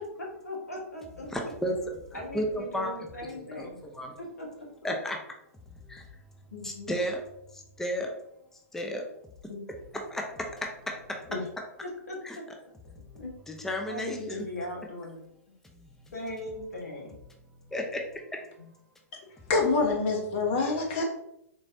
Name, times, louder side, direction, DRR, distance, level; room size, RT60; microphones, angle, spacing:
voice 1, 0.4-1.3 2.1-3.8 4.2-4.7 6.5-6.9 9.5-9.6 11.3-11.4 11.8-12.4 13.1-13.3 13.9-15.2 16.1-17.2 18.6-18.7, left 1 dB, 85° left, -2 dB, 1.3 m, -38 dB
voice 2, 1.3-1.8 2.1-2.9 3.6-3.7 3.9-4.2 4.8-5.2 5.9-6.0 6.6-7.2 7.5-8.1 8.7-9.0 10.1-11.3 12.2-12.4 13.5-14.4 15.7-15.9 17.7-18.0, equal, 5° left, 2 dB, 0.5 m, -33 dB
voice 3, 19.5-21.0, left 3 dB, 45° left, 1 dB, 1.1 m, -25 dB
3.8 x 3.2 x 2.6 m, 0.79 s
hypercardioid pair, 115°, 8 cm